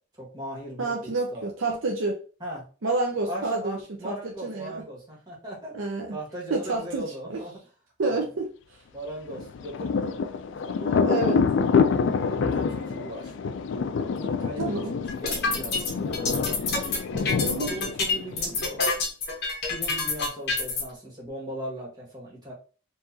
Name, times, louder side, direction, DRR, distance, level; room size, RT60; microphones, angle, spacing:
voice 1, 0.1-1.4 2.4-2.6 3.3-7.6 8.0-8.2 8.9-10.2 10.5-11.2 12.1-13.3 14.1-16.6 17.1-18.9 19.7-22.5, right 1 dB, 20° right, -4 dB, 1.7 m, -39 dB
voice 2, 0.8-2.2 2.8-3.8 4.0-4.8 5.7-6.2 6.5-7.0 7.3-7.4 8.0-8.5 11.0-11.4 14.6-14.9 17.4-17.8, right 3 dB, 80° right, 0 dB, 0.7 m, -28 dB
Thunder, 9.3-18.8, left 5 dB, 65° left, 0.3 m, -27 dB
Process Washing Machine, 15.1-20.8, left 3 dB, 50° left, 1.1 m, -27 dB
4.6 x 2.7 x 2.7 m, 0.38 s
head